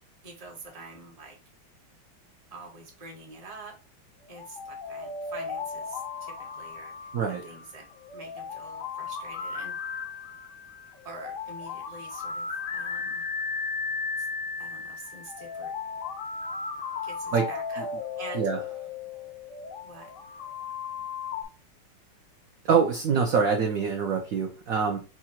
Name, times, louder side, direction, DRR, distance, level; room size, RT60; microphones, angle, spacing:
voice 1, 0.2-1.4 2.5-3.8 4.3-7.1 7.4-7.8 8.1-9.7 11.0-13.2 14.2-14.3 14.6-15.7 17.0-17.8 18.2-18.5 19.8-20.1, right 3 dB, 25° right, 1 dB, 1.0 m, -46 dB
sound 1, 4.3-21.4, left 5 dB, 60° left, 0.8 m, -36 dB
voice 2, 7.1-7.4 17.3-17.5 18.3-18.6 22.6-25.0, right 6 dB, 65° right, 3 dB, 0.9 m, -24 dB
4.8 x 2.5 x 4.4 m, 0.32 s
omnidirectional pair, 2.2 m